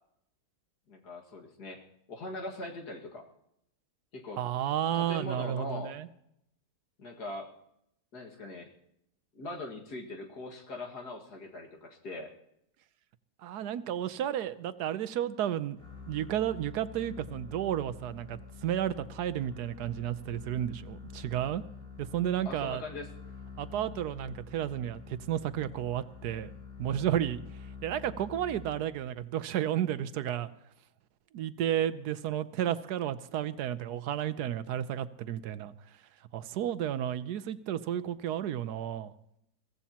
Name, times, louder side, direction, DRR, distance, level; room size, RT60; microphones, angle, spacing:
voice 1, 0.9-1.8 2.1-3.3 4.1-4.4 4.9-6.0 7.0-7.5 8.1-8.7 9.3-12.3 22.5-23.1, left 2 dB, 90° left, 1 dB, 2.5 m, -41 dB
voice 2, 4.4-6.1 13.4-15.8 16.1-21.6 22.0-22.8 23.6-26.5 26.8-27.4 27.8-30.5 31.3-35.7 36.3-39.1, right 10 dB, 85° right, 13 dB, 1.3 m, -32 dB
sound 1, 15.8-29.2, left 5 dB, 30° left, 3.5 m, -47 dB
22.5 x 15.5 x 2.9 m, 0.77 s
omnidirectional pair, 1.7 m